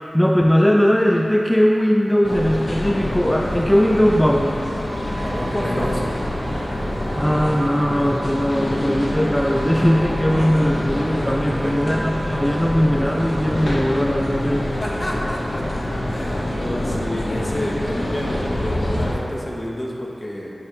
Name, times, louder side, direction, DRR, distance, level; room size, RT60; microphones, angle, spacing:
voice 1, 0.1-4.6 7.2-14.7, equal, 10° left, 0 dB, 0.4 m, -19 dB
sound 1, 2.2-19.1, left 1 dB, 70° left, 1.2 m, -26 dB
sound 2, 4.8-13.8, right 3 dB, 80° right, 0.6 m, -39 dB
voice 2, 5.2-6.1 11.3-11.8 14.8-15.6 16.1-20.5, left 1 dB, 35° left, -3 dB, 1.3 m, -29 dB
9.5 x 3.5 x 5.9 m, 2.8 s
wide cardioid pair, 55°, 0 cm